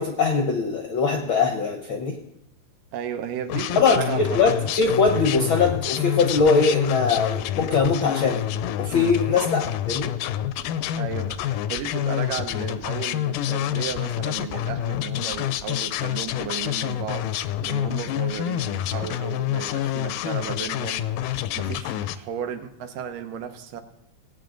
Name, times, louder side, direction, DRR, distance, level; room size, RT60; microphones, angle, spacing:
voice 1, 0.0-2.2 3.8-8.4 8.8-9.6 9.9-10.1, left 4 dB, 70° left, 1.2 m, -21 dB
voice 2, 2.9-4.7 9.3-9.7 11.0-23.8, right 8 dB, 90° right, 2.7 m, -34 dB
sound 1, 3.5-22.2, left 11 dB, 90° left, 2.2 m, -28 dB
18.0 x 9.3 x 3.9 m
omnidirectional pair, 3.7 m